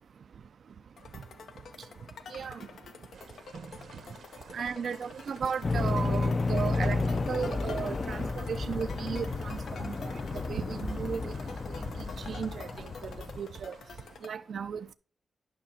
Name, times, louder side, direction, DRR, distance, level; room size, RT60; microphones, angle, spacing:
sound 1, 1.0-14.3, left 5 dB, 85° left, 0.8 m, -48 dB
voice 1, 2.3-2.7 4.5-11.3 12.3-13.7 14.2-14.9, right 6 dB, 70° right, 0.4 m, -35 dB
sound 2, 3.1-14.2, right 5 dB, 85° right, 1.2 m, -51 dB
sound 3, 5.6-13.4, left 3 dB, 45° left, 0.5 m, -32 dB
10.0 x 5.7 x 2.8 m
cardioid pair, 80°, 0 cm